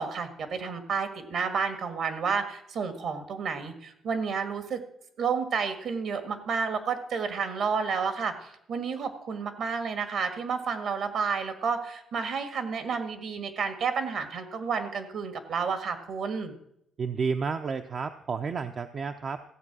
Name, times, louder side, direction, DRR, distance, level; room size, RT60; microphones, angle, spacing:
voice 1, 0.0-4.8 5.2-16.5, right 5 dB, 70° right, 8 dB, 1.9 m, -31 dB
voice 2, 17.0-19.4, right 5 dB, 50° right, 7 dB, 0.6 m, -31 dB
15.0 x 7.8 x 6.2 m, 0.75 s
cardioid pair, 90°, 0 cm